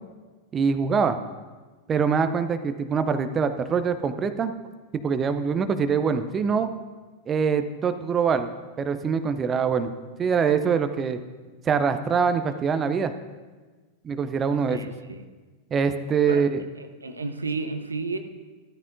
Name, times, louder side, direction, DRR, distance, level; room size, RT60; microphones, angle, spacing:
voice 1, 0.5-1.2 1.9-4.5 5.0-6.7 7.3-8.5 8.8-9.9 10.2-11.2 11.6-13.1 14.0-14.8 15.7-16.6, right 6 dB, 25° right, 9 dB, 0.6 m, -24 dB
voice 2, 14.7-15.2 16.3-16.4 16.8-18.2, right 4 dB, 80° right, 8 dB, 0.7 m, -32 dB
14.0 x 13.0 x 2.6 m, 1.3 s
figure-of-eight pair, 90°, 0 cm